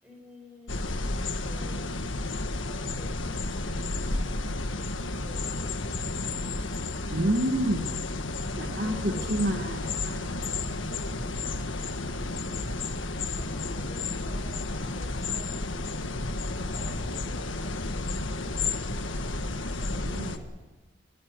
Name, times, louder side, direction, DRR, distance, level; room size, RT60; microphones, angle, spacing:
voice 1, 0.0-1.9 2.6-6.5 8.5-9.9 12.0-20.5, left 1 dB, 5° right, -1 dB, 7.6 m, -52 dB
sound 1, 0.7-20.4, left 2 dB, 75° left, 1.5 m, -32 dB
voice 2, 7.1-8.1 8.6-10.4 11.3-11.5 19.9-20.4, right 1 dB, 55° right, 4 dB, 1.7 m, -29 dB
23.5 x 14.5 x 9.6 m, 1.3 s
head